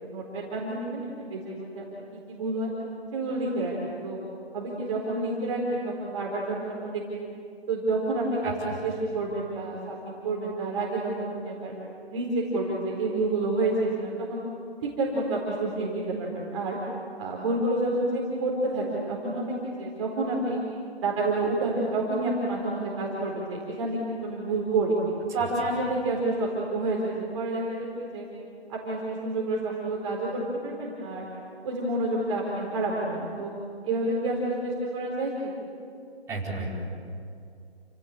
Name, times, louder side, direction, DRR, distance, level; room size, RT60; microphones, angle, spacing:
voice 1, 0.0-1.8 2.3-2.7 3.1-4.2 4.5-7.3 7.7-11.7 12.1-14.4 14.8-16.8 17.2-20.6 21.0-25.0 25.3-28.3 28.7-31.3 31.6-33.5 33.8-35.5, right 2 dB, 30° right, -4 dB, 4.4 m, -29 dB
voice 2, 8.4-8.8 36.3-36.7, right 3 dB, 10° right, -8 dB, 4.9 m, -33 dB
30.0 x 18.0 x 8.8 m, 2.5 s
figure-of-eight pair, 150°, 32 cm